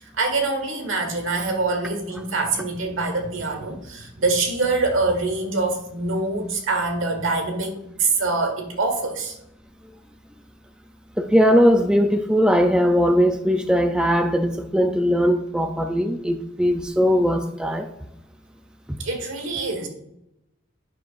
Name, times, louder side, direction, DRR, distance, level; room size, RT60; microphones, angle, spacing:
voice 1, 0.2-9.4 19.0-19.9, right 3 dB, 75° right, 4 dB, 1.5 m, -24 dB
voice 2, 11.2-17.9, equal, 5° right, 5 dB, 0.4 m, -19 dB
9.7 x 6.2 x 2.5 m, 0.86 s
head